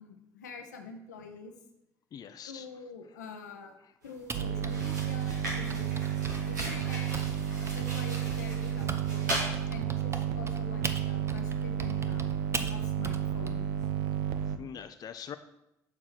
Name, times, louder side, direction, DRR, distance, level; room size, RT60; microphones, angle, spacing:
voice 1, 0.0-1.5 2.3-3.7 4.0-5.9 6.5-7.2 7.7-9.3 9.7-12.2 12.7-13.7, left 5 dB, 80° left, 5 dB, 0.7 m, -46 dB
voice 2, 2.1-2.7 3.8-3.9 6.0-6.1 8.2-8.4 10.9-11.0 14.4-15.4, left 8 dB, 45° left, 10 dB, 0.4 m, -44 dB
sound 1, 4.0-4.2 4.6-9.5, right 1 dB, 85° right, 1.9 m, -39 dB
Typing, 4.3-9.1 9.4-13.5, right 4 dB, 30° right, 0.7 m, -39 dB
sound 2, 4.3-14.6, right 9 dB, 70° right, 0.4 m, -32 dB
6.6 x 4.8 x 5.8 m, 0.88 s
figure-of-eight pair, 50°, 9 cm